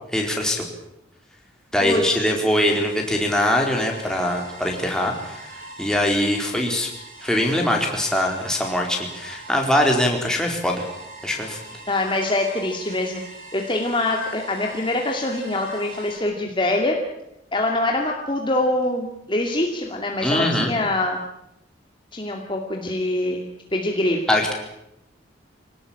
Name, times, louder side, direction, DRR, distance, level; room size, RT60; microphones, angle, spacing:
voice 1, 0.1-0.6 1.7-6.9 7.2-10.9 11.2-11.6 20.2-20.7 24.3-24.5, left 1 dB, 5° left, 0 dB, 4.4 m, -22 dB
voice 2, 1.8-2.3 11.9-13.2 13.5-17.0 17.5-21.2 22.1-23.5 23.7-24.2, left 1 dB, 25° left, 1 dB, 2.5 m, -24 dB
sound 1, 2.4-16.2, right 2 dB, 45° right, 8.0 m, -42 dB
26.5 x 18.5 x 8.8 m, 0.84 s
head